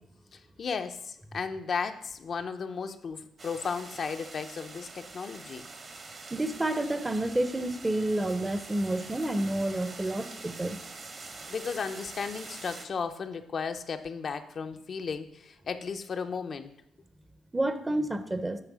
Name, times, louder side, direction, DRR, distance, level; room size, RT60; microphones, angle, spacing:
voice 1, 0.3-5.7 11.3-16.7, left 5 dB, 50° left, 7 dB, 0.5 m, -35 dB
sound 1, 3.4-12.9, right 3 dB, 40° right, 1.0 m, -45 dB
voice 2, 6.3-10.8 17.5-18.6, right 1 dB, 15° right, 10 dB, 0.6 m, -29 dB
8.9 x 3.2 x 6.1 m, 0.75 s
cardioid pair, 90°, 0 cm